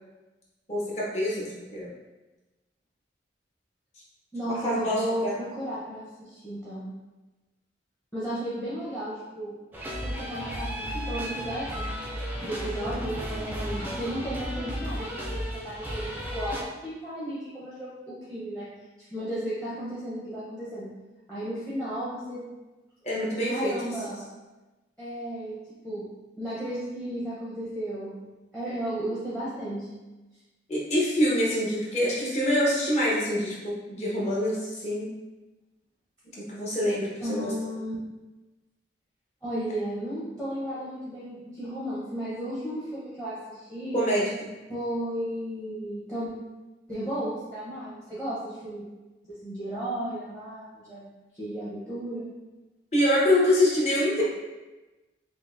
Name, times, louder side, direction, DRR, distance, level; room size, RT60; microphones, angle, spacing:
voice 1, 0.7-1.9 4.4-5.4 23.0-23.7 30.7-35.1 36.4-37.5 43.9-44.3 52.9-54.2, left 1 dB, 35° left, -6 dB, 0.9 m, -25 dB
voice 2, 4.3-6.9 8.1-9.6 10.0-11.8 12.4-20.9 21.3-22.5 23.3-24.3 25.0-25.6 25.8-26.1 26.4-28.2 28.5-30.0 37.2-37.9 39.4-44.0 44.7-46.3 46.9-48.8 49.2-51.1 51.3-52.3, equal, 10° left, -10 dB, 0.7 m, -34 dB
sound 1, 9.7-16.6, equal, 10° right, 0.4 m, -34 dB
5.3 x 2.1 x 2.5 m, 1.1 s
head